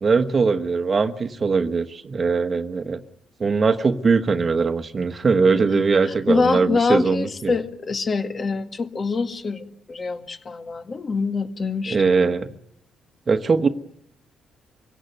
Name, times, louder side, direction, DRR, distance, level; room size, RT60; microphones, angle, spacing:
voice 1, 0.0-3.0 3.4-7.5 11.9-12.5 13.3-13.7, right 4 dB, 40° right, 10 dB, 1.3 m, -21 dB
voice 2, 5.7-12.3, left 4 dB, 40° left, 8 dB, 1.9 m, -25 dB
25.0 x 16.5 x 9.3 m, 0.78 s
cardioid pair, 90°, 0 cm